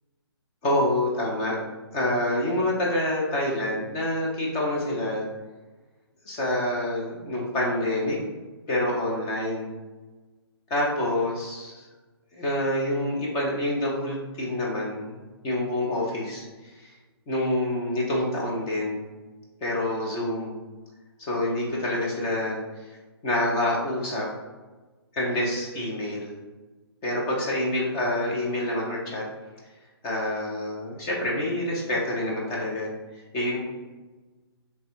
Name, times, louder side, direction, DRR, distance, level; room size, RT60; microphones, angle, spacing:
voice 1, 0.6-1.6 1.9-5.3 6.2-8.2 8.7-9.7 10.7-11.9 12.3-15.2 15.4-16.4 16.8-16.9 17.3-19.0 19.6-20.5 21.2-22.6 23.2-24.3 25.1-26.4 27.0-29.2 30.0-32.9 33.3-33.6, left 1 dB, 20° left, -3 dB, 0.7 m, -27 dB
3.2 x 2.4 x 4.4 m, 1.3 s
hypercardioid pair, 165°, 14 cm